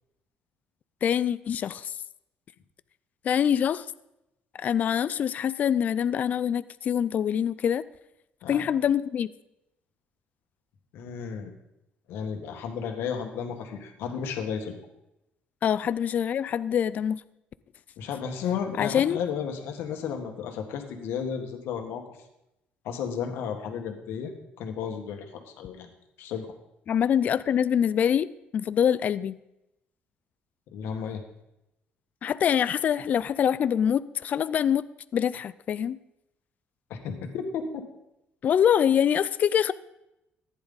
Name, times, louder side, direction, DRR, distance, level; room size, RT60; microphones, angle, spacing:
voice 1, 1.0-1.9 3.2-3.9 4.6-7.8 8.5-9.3 15.6-17.2 18.8-19.2 26.9-28.3 28.5-29.3 32.2-34.8 35.1-36.0 38.4-39.7, left 9 dB, 40° left, 16 dB, 0.4 m, -24 dB
voice 2, 10.9-11.5 12.1-14.7 18.0-22.0 22.8-24.3 24.6-25.9 26.2-26.5 30.7-31.2 36.9-37.8, left 7 dB, 80° left, 5 dB, 1.7 m, -33 dB
14.5 x 10.5 x 4.0 m, 0.87 s
cardioid pair, 145°, 4 cm